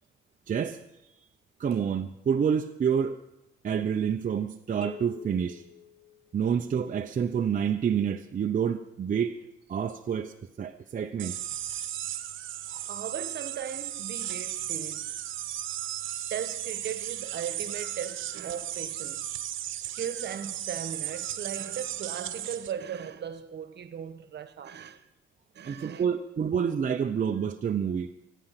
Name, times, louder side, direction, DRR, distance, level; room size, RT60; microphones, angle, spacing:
voice 1, 0.5-0.8 1.6-3.2 3.6-5.6 6.3-9.3 9.7-11.4 25.6-28.1, right 7 dB, 40° right, 0.8 m, -28 dB
sound 1, 4.8-6.8, left 5 dB, 5° left, 1.2 m, -46 dB
sound 2, 11.2-22.7, right 12 dB, 80° right, 1.1 m, -35 dB
voice 2, 12.9-15.1 16.3-19.3 19.8-25.0 25.5-26.1, right 8 dB, 60° right, 1.4 m, -38 dB
24.0 x 10.0 x 5.9 m
cardioid pair, 90°, 20 cm